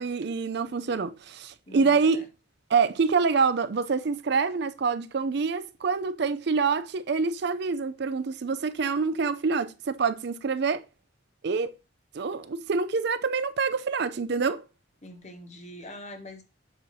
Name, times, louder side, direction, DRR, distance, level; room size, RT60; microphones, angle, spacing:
voice 1, 0.0-2.2 2.7-10.8 11.4-11.7 12.1-14.6, right 5 dB, 55° right, 0.4 m, -26 dB
voice 2, 1.7-2.3 15.0-16.4, left 1 dB, 35° left, 1.1 m, -43 dB
7.5 x 2.7 x 5.7 m
head